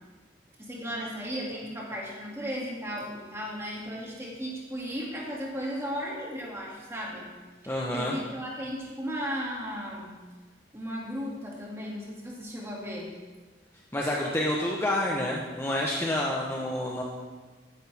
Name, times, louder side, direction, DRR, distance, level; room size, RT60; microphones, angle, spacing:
voice 1, 0.6-7.3 7.6-10.1 10.7-13.1, equal, 15° right, -3 dB, 2.4 m, -35 dB
voice 2, 7.7-8.2 13.9-17.0, left 1 dB, 15° left, -3 dB, 1.0 m, -28 dB
15.0 x 11.0 x 3.5 m, 1.3 s
head